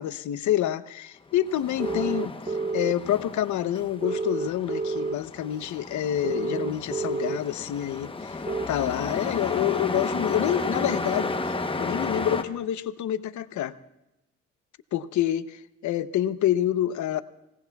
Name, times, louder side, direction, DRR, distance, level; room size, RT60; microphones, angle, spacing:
voice 1, 0.0-2.3 2.7-8.4 8.7-13.7 14.9-17.2, left 11 dB, 70° left, 13 dB, 0.8 m, -27 dB
Truck, 1.3-12.4, left 3 dB, 15° left, 0.9 m, -33 dB
sound 1, 1.8-2.9 4.0-5.2 6.2-7.4 8.5-8.7, right 4 dB, 25° right, 0.7 m, -29 dB
26.5 x 18.0 x 2.3 m, 0.92 s
cardioid pair, 90°, 30 cm